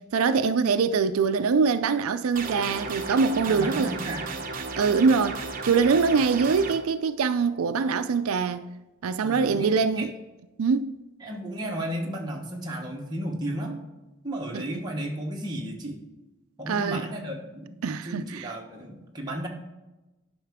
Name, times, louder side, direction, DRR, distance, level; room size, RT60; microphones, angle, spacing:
voice 1, 0.1-4.0 4.8-8.7 9.0-10.1 10.6-10.9 14.5-14.6 16.7-17.1 17.8-18.5, right 5 dB, 90° right, 0.4 m, -23 dB
sound 1, 2.4-6.7, right 3 dB, 40° right, 0.9 m, -34 dB
voice 2, 3.4-4.3 9.2-9.7 10.0-10.1 11.2-13.8 14.2-16.0 16.6-19.5, right 1 dB, 20° right, 1.2 m, -34 dB
10.0 x 5.6 x 3.6 m
head